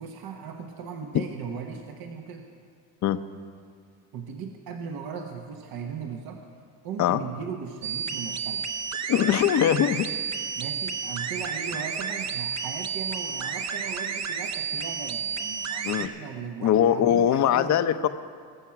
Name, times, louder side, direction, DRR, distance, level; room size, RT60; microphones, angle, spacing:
voice 1, 0.0-2.5 4.1-6.4 6.8-8.6 10.6-18.1, right 6 dB, 60° right, 3 dB, 1.2 m, -38 dB
sound 1, 7.8-16.1, right 6 dB, 40° right, 1.0 m, -31 dB
voice 2, 9.1-10.1 15.8-16.1 16.6-18.1, left 10 dB, 45° left, 11 dB, 0.7 m, -21 dB
21.0 x 7.3 x 5.9 m, 2.1 s
supercardioid pair, 95°, 41 cm